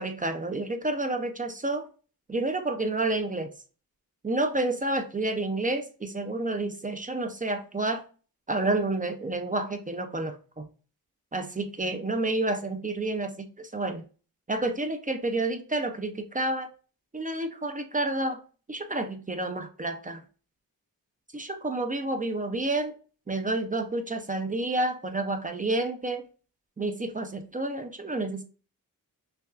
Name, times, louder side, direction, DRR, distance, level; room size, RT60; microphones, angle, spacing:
voice 1, 0.0-1.9 2.3-3.5 4.2-8.0 8.5-10.7 11.3-14.0 14.5-16.7 17.1-18.4 18.7-20.2 21.3-22.9 23.3-26.3 26.8-28.4, right 2 dB, 25° right, 0.5 m, -29 dB
5.7 x 2.3 x 2.4 m
wide cardioid pair, 80°, 35 cm